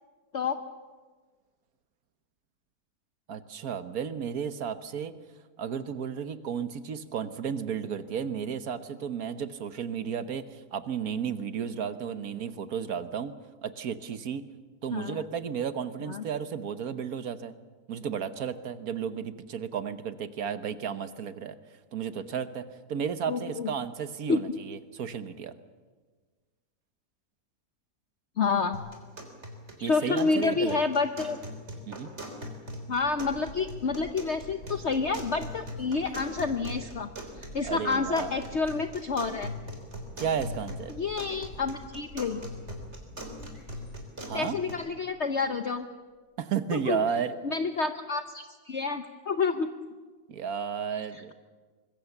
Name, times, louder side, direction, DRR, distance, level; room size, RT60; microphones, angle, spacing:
voice 1, 3.3-5.1 5.6-13.3 13.6-14.4 14.8-17.5 17.9-21.5 21.9-25.5 29.8-30.8 31.9-32.1 37.6-38.3 40.2-40.9 44.3-44.6 46.4-47.4 50.3-51.3, right 7 dB, 60° right, 12 dB, 1.4 m, -33 dB
voice 2, 23.3-23.7 24.3-24.4 28.4-28.8 29.8-31.4 32.9-37.1 37.5-39.5 40.9-42.4 44.3-45.9 46.7-47.0 47.4-49.7 51.1-51.3, left 4 dB, 50° left, 8 dB, 1.0 m, -29 dB
sound 1, 28.7-44.7, equal, 40° right, 3.8 m, -42 dB
sound 2, 32.9-45.5, equal, 70° left, 6.7 m, -48 dB
25.0 x 21.5 x 7.2 m, 1.4 s
omnidirectional pair, 1.8 m